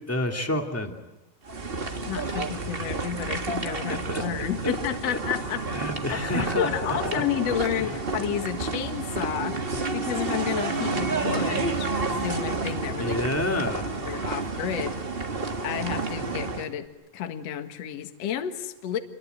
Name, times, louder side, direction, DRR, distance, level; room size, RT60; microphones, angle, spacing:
voice 1, 0.1-0.9 2.3-2.4 3.6-4.7 5.1-5.2 5.7-7.0 7.8-7.9 13.0-13.9 14.7-14.9, left 1 dB, 5° left, 3 dB, 1.8 m, -30 dB
sound 1, 1.5-16.7, right 3 dB, 50° right, 0.6 m, -30 dB
voice 2, 2.0-13.2 14.1-14.9 15.6-19.0, left 9 dB, 55° left, 7 dB, 2.4 m, -31 dB
29.0 x 22.5 x 9.3 m, 1.0 s
omnidirectional pair, 4.1 m